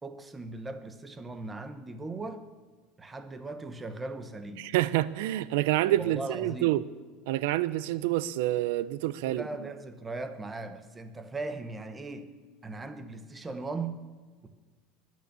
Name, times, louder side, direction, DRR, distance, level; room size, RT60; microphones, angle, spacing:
voice 1, 0.0-2.4 3.0-4.7 6.0-6.8 9.2-12.3 12.6-14.0 14.4-14.5, right 3 dB, 10° right, 10 dB, 1.0 m, -38 dB
voice 2, 4.6-6.8 7.3-9.4, right 15 dB, 80° right, 17 dB, 0.6 m, -27 dB
21.5 x 9.5 x 6.8 m, 1.4 s
cardioid pair, 170°, 0 cm